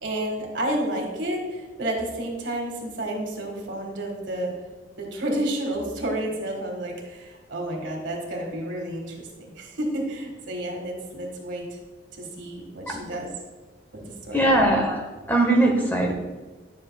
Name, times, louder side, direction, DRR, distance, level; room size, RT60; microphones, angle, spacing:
voice 1, 0.0-4.5 5.0-11.7 12.2-13.3 13.9-14.5, right 1 dB, 75° right, 1 dB, 1.7 m, -30 dB
voice 2, 14.3-16.1, right 1 dB, 10° left, 1 dB, 0.9 m, -21 dB
10.5 x 7.4 x 2.3 m, 1.3 s
head